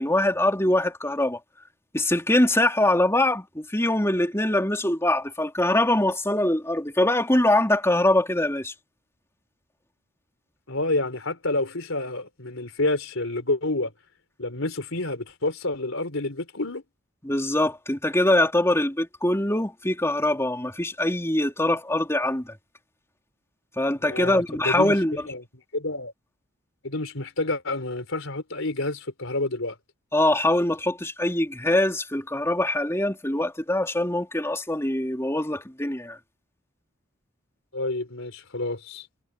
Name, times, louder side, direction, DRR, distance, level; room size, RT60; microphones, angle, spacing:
voice 1, 0.0-1.4 1.9-8.7 17.2-22.5 23.8-25.2 30.1-36.2, left 1 dB, 15° left, 3.4 m, -23 dB
voice 2, 10.7-13.9 14.4-16.8 24.0-25.0 25.3-25.4 25.7-26.1 26.8-29.8 37.7-39.1, left 2 dB, 70° left, 4.0 m, -28 dB
head